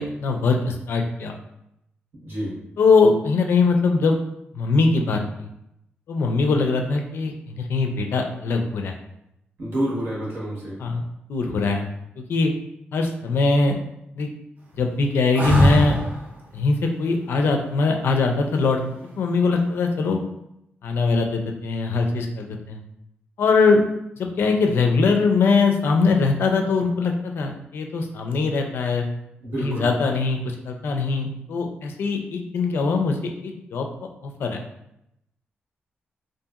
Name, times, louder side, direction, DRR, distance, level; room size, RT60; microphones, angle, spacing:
voice 1, 0.0-1.3 2.8-4.2 4.5-5.5 6.1-8.9 10.8-11.0 11.3-11.9 12.3-12.5 12.9-13.8 14.1-14.3 14.8-16.0 16.5-18.8 19.2-20.2 20.8-22.8 23.4-23.8 24.2-29.0 29.6-33.2 33.4-33.9 34.4-34.6, left 4 dB, 65° left, 3 dB, 0.4 m, -21 dB
voice 2, 2.2-2.5 9.6-10.8 29.4-29.9, right 1 dB, 90° right, -6 dB, 1.1 m, -28 dB
sound 1, 15.4-16.3 18.9-19.5, equal, 45° right, 0.5 m, -21 dB
2.8 x 2.5 x 2.4 m, 0.82 s
wide cardioid pair, 175°, 4 cm